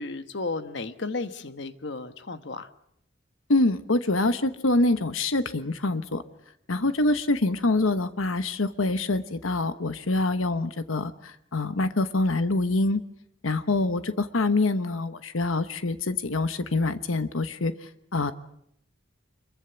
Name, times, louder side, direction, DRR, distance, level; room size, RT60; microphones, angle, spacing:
voice 1, 0.0-2.7, left 3 dB, 60° left, 10 dB, 1.3 m, -34 dB
voice 2, 3.5-6.2 6.7-13.0 13.4-17.7 18.1-18.3, left 2 dB, 85° left, 11 dB, 1.1 m, -25 dB
25.5 x 22.5 x 7.0 m, 0.74 s
head